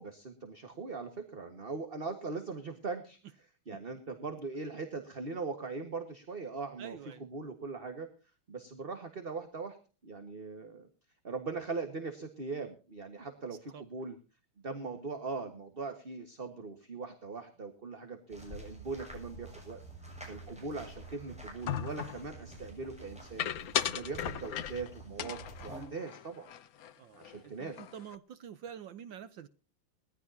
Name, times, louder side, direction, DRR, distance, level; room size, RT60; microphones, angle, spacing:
voice 1, 0.0-3.2 3.7-8.1 8.5-9.8 10.0-10.9 11.2-14.2 14.6-19.8 20.3-23.5 23.9-26.5 27.2-27.8, right 4 dB, 30° right, 1.6 m, -40 dB
voice 2, 6.8-7.2 13.7-13.8 14.7-15.0 27.0-29.5, right 8 dB, 65° right, 1.5 m, -47 dB
sound 1, 18.3-25.9, right 1 dB, 5° right, 7.3 m, -48 dB
sound 2, 21.7-22.2 23.4-24.9 25.2-26.9 27.2-27.4 27.7-28.2, left 10 dB, 60° left, 1.0 m, -36 dB
21.5 x 14.5 x 2.8 m
omnidirectional pair, 2.3 m